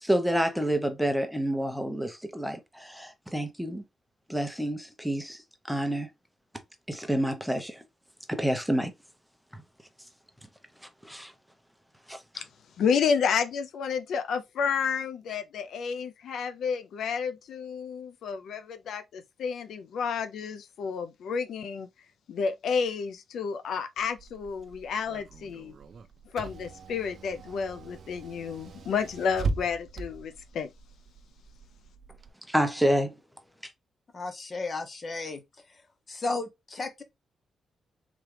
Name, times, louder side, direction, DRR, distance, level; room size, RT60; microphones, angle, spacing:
voice 1, 0.0-3.8 4.3-5.4 5.7-6.1 6.9-7.8 8.3-8.9 9.5-9.6 11.0-11.3 12.1-12.4 32.5-33.1, equal, ahead, 0.7 m, -28 dB
voice 2, 12.8-21.9 22.3-25.7 26.3-30.7, left 6 dB, 80° left, 0.4 m, -30 dB
Car / Engine, 24.0-32.3, right 3 dB, 55° right, 0.4 m, -39 dB
voice 3, 34.1-35.4 35.7-35.8 36.1-37.0, left 3 dB, 35° left, 0.9 m, -34 dB
3.6 x 3.1 x 3.2 m
cardioid pair, 115°, 0 cm